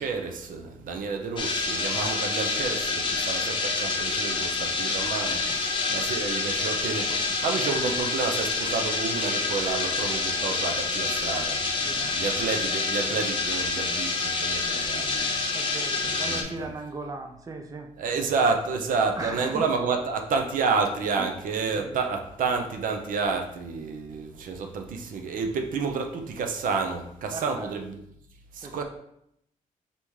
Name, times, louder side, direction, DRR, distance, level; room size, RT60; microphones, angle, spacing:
voice 1, 0.0-5.4 5.9-15.4 16.0-16.7 18.0-28.0 28.5-28.8, right 4 dB, 75° right, 4 dB, 0.6 m, -30 dB
sound 1, 1.4-16.4, left 3 dB, 35° left, 0.7 m, -27 dB
voice 2, 11.8-12.2 15.5-18.2 19.2-19.7 21.2-21.3 21.7-22.0 27.3-27.7 28.6-28.8, right 3 dB, 25° right, 4 dB, 0.5 m, -38 dB
4.1 x 3.5 x 3.1 m, 0.75 s
cardioid pair, 110°, 14 cm